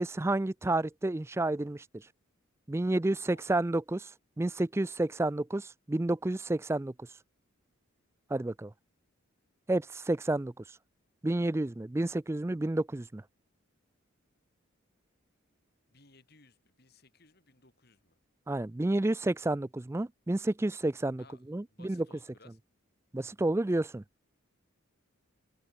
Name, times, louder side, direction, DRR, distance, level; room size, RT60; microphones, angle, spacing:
voice 1, 0.0-2.0 2.7-4.1 4.4-7.1 8.3-8.7 9.7-10.5 11.2-13.2 18.5-22.0 23.1-24.0, right 2 dB, 10° right, 0.3 m, -30 dB
voice 2, 3.1-3.5 15.9-18.2 21.2-22.6, left 3 dB, 45° left, 3.8 m, -61 dB
head